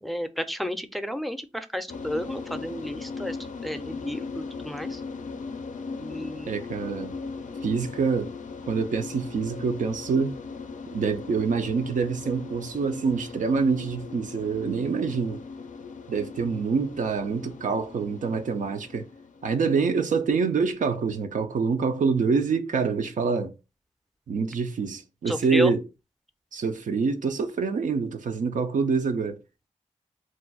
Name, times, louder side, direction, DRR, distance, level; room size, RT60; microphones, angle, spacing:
voice 1, 0.0-3.4 3.6-5.0 6.0-6.5 25.3-25.7, equal, ahead, 0.5 m, -31 dB
sound 1, 1.9-20.6, left 4 dB, 80° left, 0.4 m, -39 dB
voice 2, 6.5-7.1 7.6-8.3 8.7-10.4 10.9-15.4 16.1-19.1 19.4-23.5 24.3-25.8 26.5-29.4, right 5 dB, 90° right, 0.5 m, -26 dB
2.5 x 2.2 x 3.9 m
cardioid pair, 40°, 13 cm